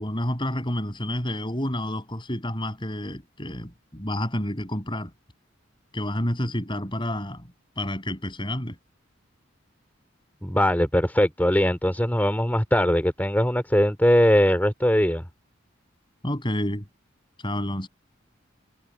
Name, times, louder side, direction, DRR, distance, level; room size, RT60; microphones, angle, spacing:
voice 1, 0.0-5.1 5.9-7.4 7.8-8.8 16.2-16.8 17.4-17.9, left 1 dB, 25° left, 7.9 m, -29 dB
voice 2, 10.4-15.3, equal, 10° left, 3.0 m, -21 dB
head